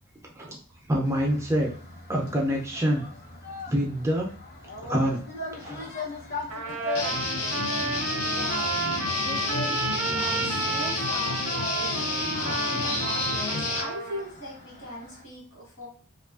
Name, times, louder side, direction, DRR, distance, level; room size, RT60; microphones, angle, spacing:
voice 1, 0.9-1.7 2.1-3.0 3.7-4.3 4.8-5.2 5.5-5.9, equal, 15° right, -1 dB, 0.3 m, -26 dB
sound 1, 1.0-15.2, left 2 dB, 45° left, 0.7 m, -39 dB
Trumpet, 6.5-14.2, right 3 dB, 60° right, 0.5 m, -31 dB
Guitar, 6.9-13.8, left 3 dB, 85° left, 0.6 m, -30 dB
voice 2, 8.3-8.8 9.1-15.9, equal, 65° left, -3 dB, 1.2 m, -39 dB
2.6 x 2.4 x 2.3 m, 0.43 s
head